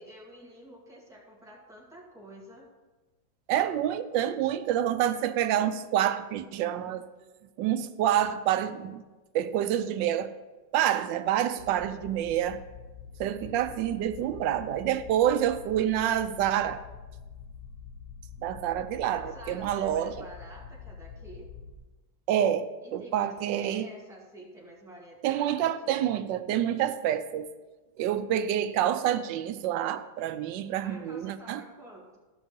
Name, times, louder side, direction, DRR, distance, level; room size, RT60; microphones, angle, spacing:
voice 1, 0.0-2.7 19.1-21.5 22.8-26.0 30.8-32.2, right 1 dB, ahead, -3 dB, 2.0 m, -49 dB
voice 2, 3.5-7.0 7.6-9.0 9.3-10.3 10.7-12.6 13.2-16.8 18.4-20.2 22.3-23.9 25.2-27.5 28.0-31.6, right 11 dB, 90° right, 11 dB, 1.3 m, -27 dB
sound 1, 11.6-21.7, left 7 dB, 55° left, 1.5 m, -46 dB
13.5 x 5.9 x 5.3 m, 1.2 s
omnidirectional pair, 1.9 m